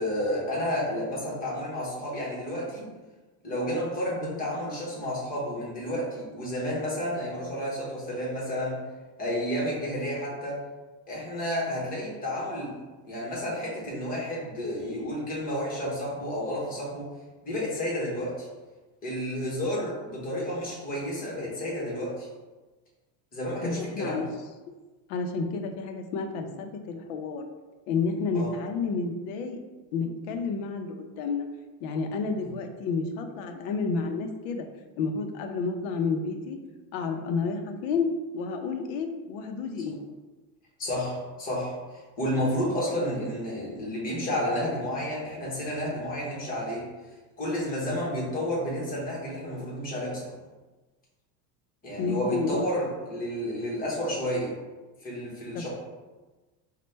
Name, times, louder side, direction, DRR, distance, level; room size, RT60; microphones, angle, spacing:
voice 1, 0.0-2.9 3.4-8.8 9.2-10.6 11.1-12.8 13.1-17.1 17.4-18.5 19.0-22.3 23.3-24.3 28.3-28.5 40.8-46.9 47.4-50.3 51.8-54.6 55.0-55.7, equal, 20° left, -5 dB, 0.9 m, -31 dB
voice 2, 23.6-24.3 25.1-27.4 27.9-29.6 29.9-31.5 31.8-34.7 35.0-36.6 36.9-38.1 38.3-39.9 52.0-52.6 55.5-55.7, left 4 dB, 55° left, 5 dB, 0.5 m, -30 dB
4.1 x 2.2 x 3.2 m, 1.2 s
cardioid pair, 165°, 45 cm